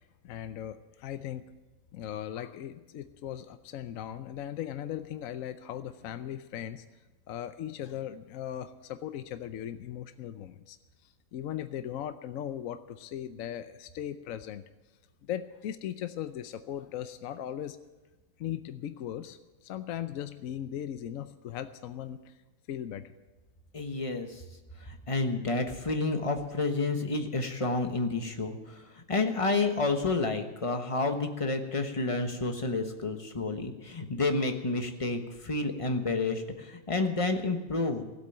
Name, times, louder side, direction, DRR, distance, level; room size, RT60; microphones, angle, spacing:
voice 1, 0.2-1.4 1.9-6.8 7.3-10.8 11.3-14.6 15.2-17.8 18.4-22.3 22.7-23.1, left 10 dB, 70° left, 11 dB, 1.0 m, -38 dB
voice 2, 23.7-24.4 24.8-38.0, left 3 dB, 25° left, 5 dB, 1.2 m, -30 dB
15.5 x 8.3 x 8.8 m, 1.1 s
omnidirectional pair, 1.5 m